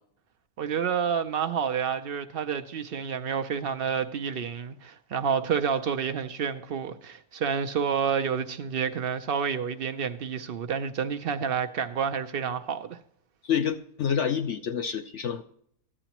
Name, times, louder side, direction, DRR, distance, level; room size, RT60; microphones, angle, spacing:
voice 1, 0.6-13.0, right 7 dB, 65° right, 0.6 m, -29 dB
voice 2, 13.4-15.4, left 8 dB, 65° left, 0.8 m, -28 dB
14.0 x 9.8 x 2.9 m
omnidirectional pair, 1.5 m